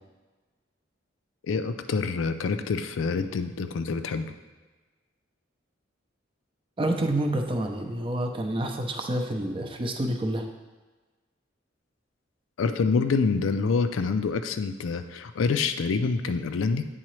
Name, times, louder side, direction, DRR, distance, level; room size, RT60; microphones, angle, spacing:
voice 1, 1.4-4.3 12.6-16.9, left 4 dB, 85° left, 9 dB, 0.4 m, -26 dB
voice 2, 6.8-10.5, right 1 dB, 25° right, 4 dB, 0.5 m, -28 dB
8.7 x 3.8 x 3.1 m, 1.3 s
head